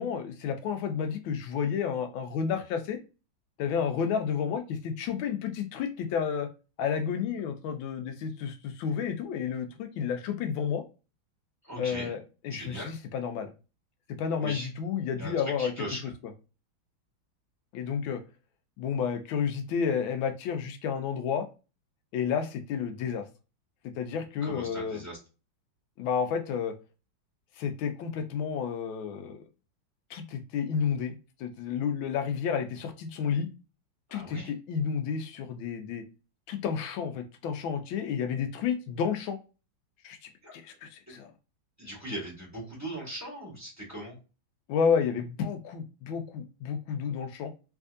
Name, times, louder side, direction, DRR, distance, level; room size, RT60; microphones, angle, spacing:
voice 1, 0.0-3.0 3.6-6.5 6.8-10.8 11.8-13.5 14.2-15.7 16.0-16.1 17.7-18.2 18.8-21.5 22.1-23.2 23.8-25.0 26.0-26.7 27.6-29.4 30.1-33.5 34.1-36.0 36.5-39.4 40.0-40.2 40.5-41.3 44.7-47.5, left 7 dB, 80° left, 7 dB, 1.4 m, -31 dB
voice 2, 11.6-12.1 12.5-12.9 14.4-14.7 15.2-15.3 15.6-16.0 24.4-25.2 34.1-34.5 40.4-40.5 41.1-41.2 41.8-44.2, equal, 10° right, -4 dB, 1.5 m, -39 dB
3.5 x 3.2 x 2.4 m, 0.32 s
omnidirectional pair, 2.2 m